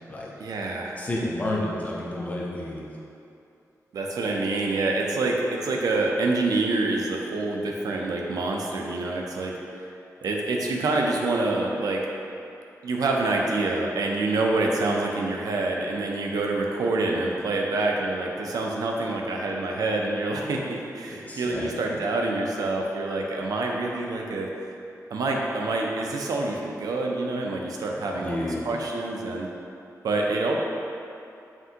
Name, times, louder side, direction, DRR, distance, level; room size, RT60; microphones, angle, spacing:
voice 1, 0.4-1.0 3.9-9.6 10.2-12.1 12.8-24.5 25.1-29.5 30.0-30.6, right 2 dB, 85° right, 0 dB, 0.5 m, -26 dB
voice 2, 1.0-2.9 21.1-21.7 28.1-28.7, left 1 dB, 25° left, -4 dB, 0.6 m, -30 dB
5.8 x 2.5 x 2.8 m, 2.7 s
wide cardioid pair, 175°, 6 cm